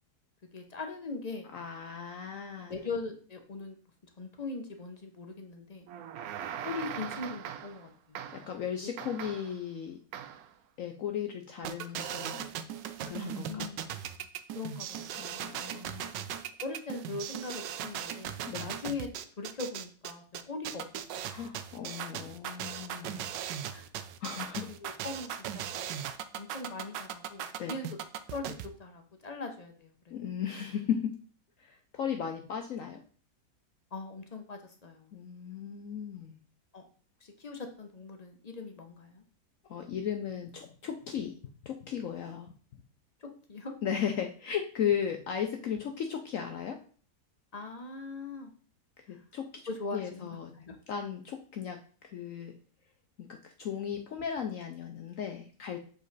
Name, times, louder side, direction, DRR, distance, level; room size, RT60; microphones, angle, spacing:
voice 1, 0.5-1.5 2.6-3.8 4.2-5.9 6.6-8.2 13.4-14.1 14.5-15.3 16.6-19.1 19.4-20.9 21.1-21.2 23.7-23.8 24.7-25.9 26.4-27.9 28.3-30.1 33.9-35.1 36.7-36.8 37.2-39.2 43.2-43.7 47.5-48.5 49.1-49.2 49.7-50.8, left 3 dB, 40° left, 5 dB, 0.6 m, -40 dB
voice 2, 1.5-2.7 6.6-6.7 8.3-10.0 10.8-12.5 13.0-13.7 15.2-16.4 18.5-18.7 21.3-23.3 24.2-24.7 27.6-27.7 30.1-31.2 31.6-33.0 35.1-36.4 39.7-41.3 41.6-42.5 43.8-46.8 49.0-49.5 49.9-50.5 50.9-51.8 52.0-52.5 53.2-55.8, left 8 dB, 65° left, 4 dB, 0.9 m, -36 dB
sound 1, 5.9-7.9 8.1-8.6 9.0-9.6 10.1-10.5, right 9 dB, 70° right, 1.0 m, -41 dB
sound 2, 11.6-28.7, right 9 dB, 85° right, 1.3 m, -38 dB
7.3 x 4.1 x 4.0 m, 0.43 s
omnidirectional pair, 1.9 m